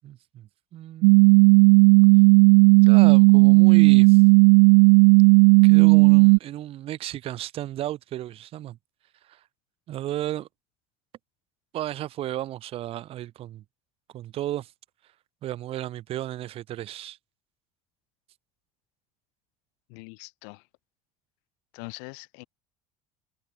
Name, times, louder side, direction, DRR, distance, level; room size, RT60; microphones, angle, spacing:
voice 1, 0.0-1.2 2.8-4.2 5.6-8.8 9.2-9.4 9.9-10.5 11.7-13.6 14.1-14.7 15.4-17.2, right 13 dB, 50° right, 7.6 m, -34 dB
sound 1, 1.0-6.4, right 40 dB or more, 85° right, 0.5 m, -14 dB
voice 2, 19.9-20.6 21.7-22.4, left 40 dB or more, 85° left, 4.3 m, -42 dB
cardioid pair, 140°, 13 cm